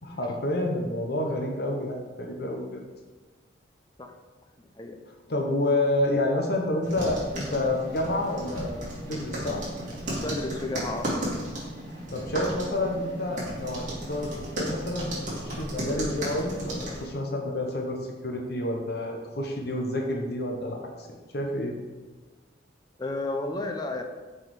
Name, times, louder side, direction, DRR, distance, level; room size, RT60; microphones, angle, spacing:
voice 1, 0.0-2.8 5.3-8.8 9.1-9.6 12.1-21.1 21.3-21.8, left 1 dB, 60° left, 1 dB, 0.9 m, -29 dB
voice 2, 4.6-5.0 10.1-11.2 23.0-24.0, left 2 dB, 20° left, 4 dB, 0.6 m, -32 dB
sound 1, 6.8-17.0, right 1 dB, 40° right, 2.1 m, -34 dB
6.2 x 4.8 x 4.7 m, 1.3 s
head